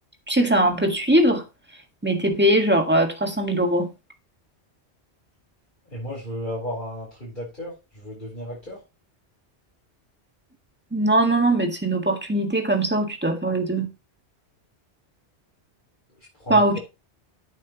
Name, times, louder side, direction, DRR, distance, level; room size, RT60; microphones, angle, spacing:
voice 1, 0.3-1.4 2.0-3.9 10.9-13.9 16.5-16.8, right 1 dB, 10° right, 1.7 m, -21 dB
voice 2, 5.8-8.8 16.1-16.8, equal, 45° left, 4.4 m, -34 dB
11.0 x 8.7 x 3.0 m
omnidirectional pair, 1.1 m